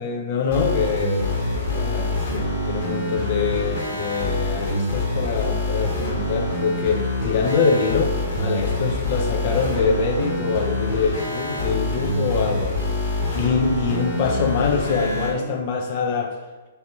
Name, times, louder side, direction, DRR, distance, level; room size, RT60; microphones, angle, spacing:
voice 1, 0.0-1.4 1.7-12.8 13.3-16.4, left 5 dB, 45° left, 2 dB, 0.4 m, -24 dB
sound 1, 0.5-15.3, left 1 dB, 60° left, 1.3 m, -25 dB
3.3 x 2.7 x 4.3 m, 1.3 s
figure-of-eight pair, 115°, 0 cm